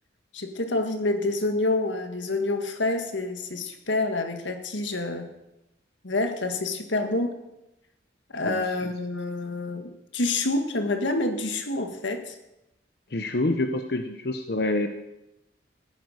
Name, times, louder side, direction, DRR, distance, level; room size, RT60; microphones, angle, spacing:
voice 1, 0.3-5.3 6.0-7.3 8.3-12.4, left 2 dB, 85° left, 6 dB, 1.8 m, -27 dB
voice 2, 13.1-14.9, left 2 dB, 55° left, 6 dB, 0.8 m, -27 dB
15.5 x 9.5 x 6.5 m, 0.93 s
head